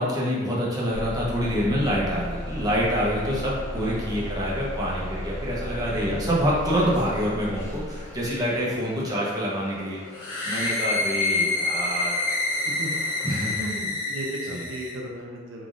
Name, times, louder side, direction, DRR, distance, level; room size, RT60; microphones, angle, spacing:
voice 1, 0.0-12.1 13.2-13.5 14.5-14.6, equal, 20° right, -6 dB, 0.7 m, -26 dB
Bus / Engine starting, 0.9-8.7, left 1 dB, 10° left, 0.5 m, -35 dB
sound 1, 2.1-13.7, left 2 dB, 35° left, 0.9 m, -45 dB
sound 2, 10.1-15.0, left 3 dB, 85° left, 1.2 m, -27 dB
voice 2, 13.4-15.7, right 1 dB, 65° right, -1 dB, 0.5 m, -36 dB
3.8 x 3.3 x 2.5 m, 1.4 s
head